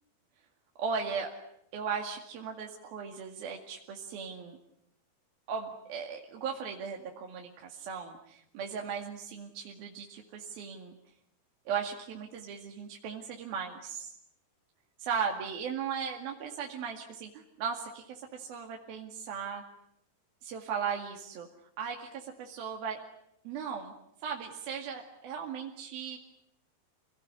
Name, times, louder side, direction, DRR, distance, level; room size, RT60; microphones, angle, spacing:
voice 1, 0.8-1.3 1.7-4.6 5.5-10.9 11.7-14.1 15.0-19.6 20.4-21.5 21.8-23.0 23.5-23.9 24.2-26.2, right 6 dB, 65° right, 1 dB, 4.0 m, -37 dB
29.0 x 19.0 x 9.9 m, 0.76 s
omnidirectional pair, 4.7 m